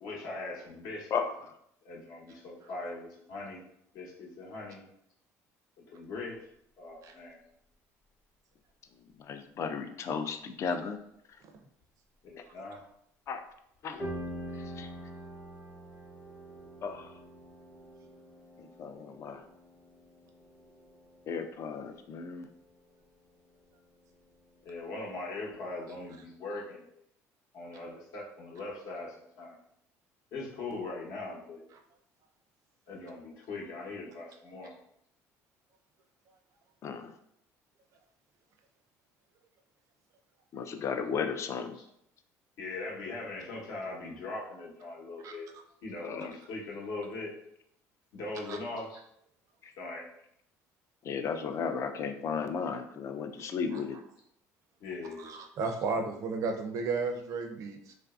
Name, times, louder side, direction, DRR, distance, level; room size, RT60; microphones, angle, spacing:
voice 1, 0.0-1.3 1.8-3.6 3.9-4.8 5.9-6.4 6.8-7.4 10.6-10.7 12.2-12.8 24.6-26.9 27.5-29.6 30.3-31.7 32.9-34.7 41.7-41.8 42.6-45.5 45.8-47.4 48.1-49.0 49.8-50.1 54.8-55.3, left 2 dB, 70° left, -3 dB, 0.9 m, -40 dB
voice 2, 1.1-1.5 9.2-11.0 12.4-12.5 13.3-13.5 13.8-14.1 14.6-14.9 16.8-17.1 18.6-19.4 21.3-22.5 36.8-37.1 40.5-41.8 46.0-46.4 49.6-49.7 51.0-54.0, left 6 dB, 45° left, 7 dB, 0.3 m, -35 dB
sound 1, 14.0-24.5 24.7-25.5, right 1 dB, 25° left, 0.8 m, -46 dB
voice 3, 55.2-57.9, right 4 dB, 55° right, 4 dB, 0.5 m, -33 dB
3.1 x 2.5 x 2.3 m, 0.73 s
cardioid pair, 105°, 7 cm